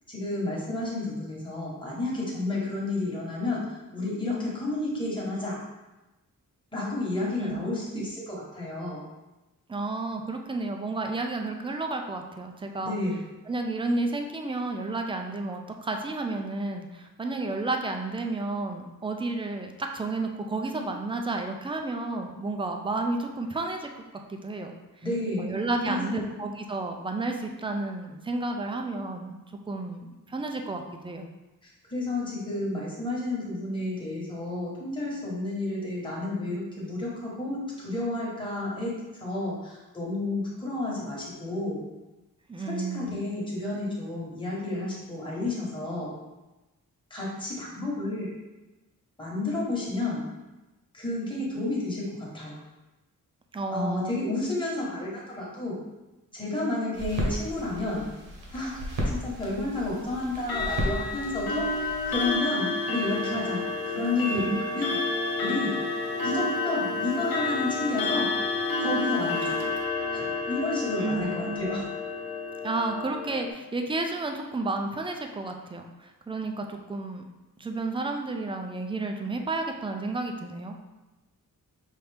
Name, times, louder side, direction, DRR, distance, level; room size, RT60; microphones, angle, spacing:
voice 1, 0.1-5.6 6.7-9.0 12.8-13.2 25.0-25.5 25.8-26.2 31.6-41.8 42.6-46.1 47.1-48.3 49.2-50.2 50.9-52.6 53.7-55.7 56.3-58.0 58.5-63.6 63.9-65.0 65.4-65.8 66.2-68.2 68.8-69.6 70.1-71.8, left 2 dB, 15° left, -5 dB, 1.1 m, -31 dB
voice 2, 9.7-13.0 13.5-23.9 24.3-25.1 25.4-29.4 29.7-31.3 42.5-43.2 53.5-54.1 64.3-64.6 71.0-71.8 72.6-77.2 77.6-80.8, right 2 dB, 15° right, 3 dB, 0.3 m, -31 dB
sound 1, 56.9-62.3, equal, 65° right, 1.2 m, -34 dB
Clock, 60.4-73.5, left 3 dB, 90° left, 0.8 m, -30 dB
5.7 x 2.7 x 3.3 m, 1.1 s
wide cardioid pair, 170°, 35 cm